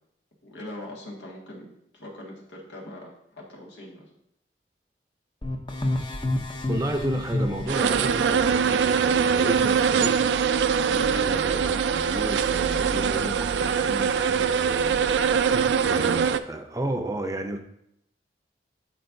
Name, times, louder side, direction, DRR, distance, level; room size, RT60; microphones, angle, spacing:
voice 1, 0.4-4.1 14.8-15.8, left 1 dB, 85° left, -2 dB, 1.8 m, -42 dB
sound 1, 5.4-8.1, left 1 dB, 25° left, 0.7 m, -28 dB
voice 2, 6.7-10.6 10.9-15.0 15.5-17.6, right 1 dB, 20° right, 5 dB, 0.6 m, -33 dB
sound 2, 7.7-16.4, right 6 dB, 80° right, 0.4 m, -23 dB
12.0 x 4.5 x 2.7 m, 0.76 s
head